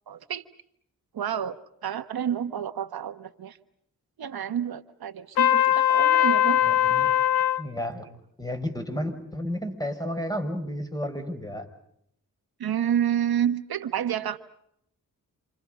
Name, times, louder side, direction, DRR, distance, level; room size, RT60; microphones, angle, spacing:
voice 1, 0.1-0.4 1.1-3.6 4.2-6.6 7.0-7.2 12.6-14.4, right 9 dB, 80° right, 10 dB, 1.2 m, -29 dB
Trumpet, 5.4-7.6, left 11 dB, 85° left, 1.6 m, -21 dB
voice 2, 6.6-7.1 7.6-8.1 8.4-11.7, equal, 10° left, 5 dB, 6.0 m, -32 dB
29.5 x 28.0 x 5.3 m, 0.73 s
cardioid pair, 70°, 36 cm